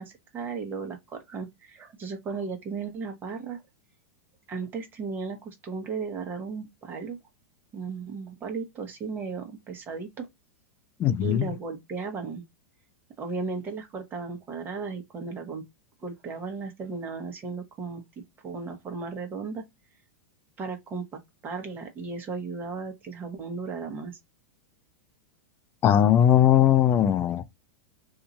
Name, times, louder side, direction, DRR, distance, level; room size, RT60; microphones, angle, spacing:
voice 1, 0.0-3.6 4.5-7.2 7.7-10.3 11.2-12.4 13.2-15.6 16.0-19.6 20.6-24.2, right 4 dB, 25° right, 1.1 m, -35 dB
voice 2, 11.0-11.5 25.8-27.4, left 10 dB, 30° left, 0.4 m, -19 dB
2.8 x 2.4 x 4.0 m
hypercardioid pair, 125°, 8 cm